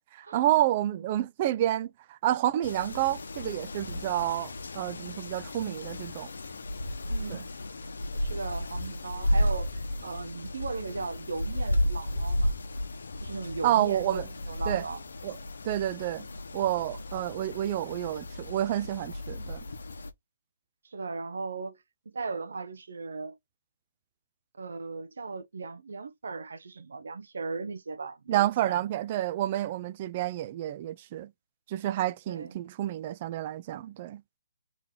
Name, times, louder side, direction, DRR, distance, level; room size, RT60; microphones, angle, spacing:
voice 1, 0.0-6.3 7.3-7.4 13.6-14.3 14.7-14.8 15.2-15.4 15.6-16.3 16.5-19.6 28.3-31.3 31.7-34.2, right 13 dB, 30° right, 0.3 m, -29 dB
sound 1, 2.6-20.1, left 1 dB, 80° left, 0.8 m, -33 dB
voice 2, 7.1-7.5 8.2-12.6 13.2-15.0 20.8-21.8 22.1-23.4 24.5-28.8 32.3-32.5, right 4 dB, 75° right, 0.7 m, -37 dB
3.8 x 3.1 x 4.2 m
hypercardioid pair, 160°, 0 cm